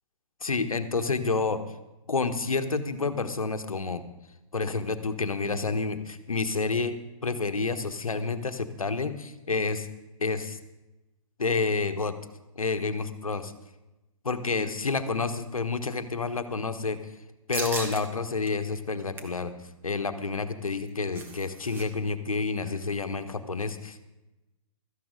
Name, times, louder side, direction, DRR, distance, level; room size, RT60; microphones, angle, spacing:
voice 1, 0.4-1.6 2.1-4.0 4.5-7.0 7.2-9.9 10.2-10.6 11.4-12.1 12.6-13.5 14.2-17.0 17.5-19.5 19.8-24.1, left 4 dB, 75° left, 8 dB, 1.1 m, -29 dB
sound 1, 17.5-18.0 18.5-18.6 18.9-19.4 20.7-21.9 22.1-22.2 22.6-22.8, right 2 dB, 10° right, 1.3 m, -37 dB
16.5 x 13.5 x 3.8 m, 1.0 s
figure-of-eight pair, 125°, 18 cm